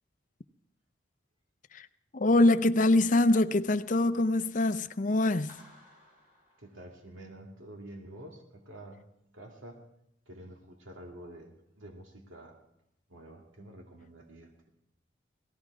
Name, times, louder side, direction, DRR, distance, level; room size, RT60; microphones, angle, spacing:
voice 1, 2.1-5.6, left 2 dB, 40° left, 0.6 m, -24 dB
Clapping, 5.5-7.4, equal, 45° right, 5.1 m, -58 dB
voice 2, 6.6-9.0 9.3-9.8 10.3-12.6 13.1-14.7, right 1 dB, 90° right, 2.2 m, -48 dB
18.5 x 15.0 x 4.8 m
head